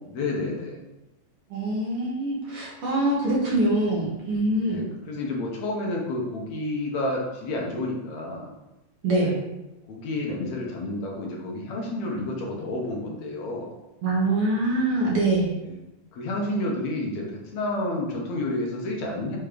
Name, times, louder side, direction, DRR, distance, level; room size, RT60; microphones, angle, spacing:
voice 1, 0.1-0.8 4.7-8.5 9.1-9.3 9.9-13.7 15.6-15.8 16.1-19.4, left 2 dB, 65° left, -1 dB, 2.3 m, -30 dB
voice 2, 1.5-4.8 9.0-9.4 14.0-15.5, right 2 dB, 50° right, -4 dB, 2.2 m, -24 dB
7.1 x 4.2 x 5.1 m, 0.97 s
omnidirectional pair, 3.8 m